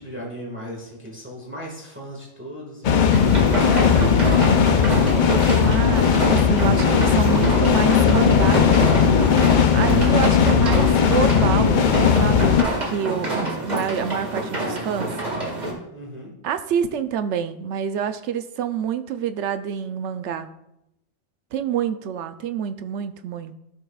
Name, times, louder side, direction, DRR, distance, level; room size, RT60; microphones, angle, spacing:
voice 1, 0.0-3.0 3.7-4.9 13.2-13.6 15.9-16.3, equal, 10° right, -2 dB, 1.5 m, -37 dB
sound 1, 2.8-12.6, left 7 dB, 60° left, 0.5 m, -17 dB
sound 2, 3.1-15.7, right 1 dB, 35° right, 1.9 m, -27 dB
voice 2, 3.7-4.4 5.1-9.3 9.7-12.6 12.8-15.1 16.4-20.5 21.5-23.6, right 8 dB, 70° right, 10 dB, 0.8 m, -27 dB
15.5 x 5.7 x 2.3 m, 0.86 s
omnidirectional pair, 1.4 m